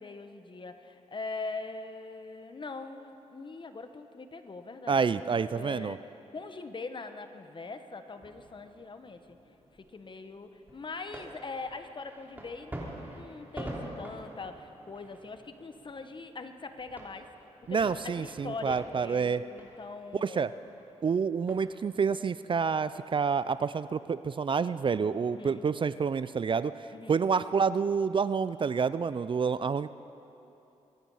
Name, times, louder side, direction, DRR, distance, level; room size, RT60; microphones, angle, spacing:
voice 1, 0.0-6.0 6.3-9.4 9.7-17.3 17.7-20.4 25.4-25.6 26.9-27.2, left 3 dB, 40° left, 8 dB, 1.1 m, -42 dB
voice 2, 4.9-6.0 17.7-19.4 20.2-20.5 21.0-26.7 27.1-30.0, right 6 dB, 40° right, 15 dB, 0.4 m, -28 dB
sound 1, 8.1-22.2, right 1 dB, 15° right, 3.5 m, -47 dB
23.5 x 10.5 x 5.6 m, 2.9 s
cardioid pair, 65°, 12 cm